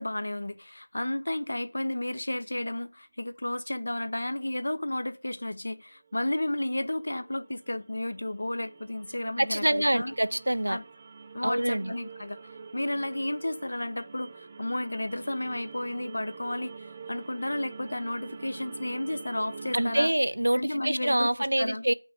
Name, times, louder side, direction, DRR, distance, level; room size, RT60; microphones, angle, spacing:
voice 1, 0.0-10.1 10.7-10.8 11.3-20.1 20.5-21.3 21.6-21.8, left 1 dB, 50° left, 0.9 m, -32 dB
sound 1, 6.0-20.1, right 5 dB, 15° right, 0.7 m, -46 dB
voice 2, 9.4-10.8 11.4-11.9 19.7-21.9, right 1 dB, 70° right, 0.7 m, -26 dB
8.9 x 5.7 x 6.6 m
figure-of-eight pair, 175°, 0 cm